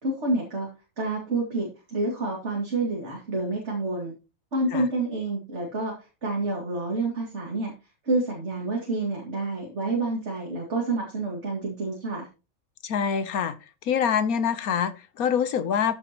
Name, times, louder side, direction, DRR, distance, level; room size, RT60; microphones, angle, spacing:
voice 1, 0.0-0.7 1.0-4.1 4.5-5.9 6.2-7.7 8.0-12.3, right 2 dB, 50° right, 2.8 m, -28 dB
voice 2, 12.8-13.5 13.8-16.0, left 7 dB, 80° left, 1.4 m, -25 dB
14.0 x 7.6 x 3.0 m
omnidirectional pair, 1.5 m